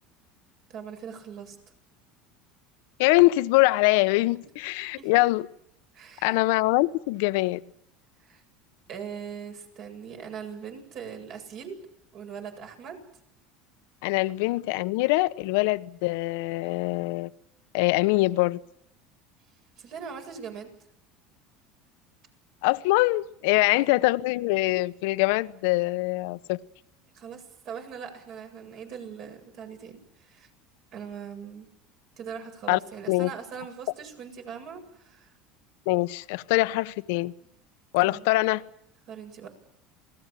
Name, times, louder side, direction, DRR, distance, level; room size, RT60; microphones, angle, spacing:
voice 1, 0.7-1.6 5.0-5.1 5.9-6.4 8.2-8.4 8.9-11.8 12.1-13.0 14.2-14.3 19.8-20.7 23.5-23.8 27.1-30.0 30.3-30.5 30.9-31.7 32.2-35.3 38.0-38.3 39.1-39.5, right 7 dB, 55° right, 7.9 m, -41 dB
voice 2, 3.0-5.5 6.2-7.6 14.0-17.3 17.7-18.6 22.6-26.6 32.7-32.8 33.1-33.3 35.9-37.3 37.9-38.6, left 20 dB, 75° left, 1.0 m, -23 dB
28.5 x 20.0 x 7.7 m
supercardioid pair, 110°, 0 cm